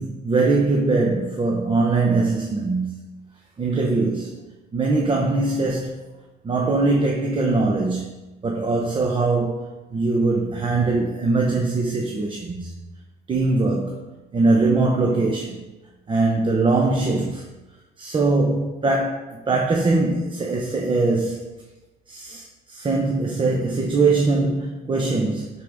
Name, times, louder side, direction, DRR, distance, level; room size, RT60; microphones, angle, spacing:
voice 1, 0.0-2.9 3.6-4.3 4.7-6.0 6.4-8.1 8.4-12.7 13.3-14.0 14.3-15.6 16.1-17.4 18.0-21.5 22.1-25.5, right 3 dB, 30° right, 0 dB, 1.0 m, -21 dB
11.5 x 4.7 x 3.6 m, 1.1 s
cardioid pair, 110°, 17 cm